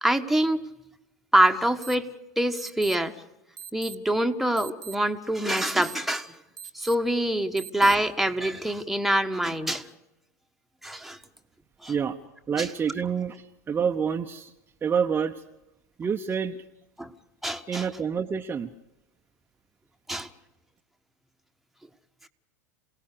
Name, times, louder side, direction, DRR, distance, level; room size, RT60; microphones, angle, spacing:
voice 1, 0.0-0.6 1.3-2.1 2.4-3.1 3.7-6.3 6.7-9.9 10.8-11.2 11.8-11.9 12.6-12.7 17.0-17.1 17.4-17.8 20.1-20.3, right 1 dB, ahead, 6 dB, 1.4 m, -25 dB
sound 1, 1.8-1.9 2.6-2.9 3.6-3.9 4.6-4.9 5.6-5.9 6.6-6.9 7.6-7.9, right 8 dB, 80° right, 1.7 m, -41 dB
voice 2, 12.5-14.5 14.8-15.4 16.0-16.6 17.7-18.7, right 7 dB, 20° right, 4 dB, 1.0 m, -27 dB
27.5 x 18.0 x 6.7 m, 0.91 s
hypercardioid pair, 90°, 10 cm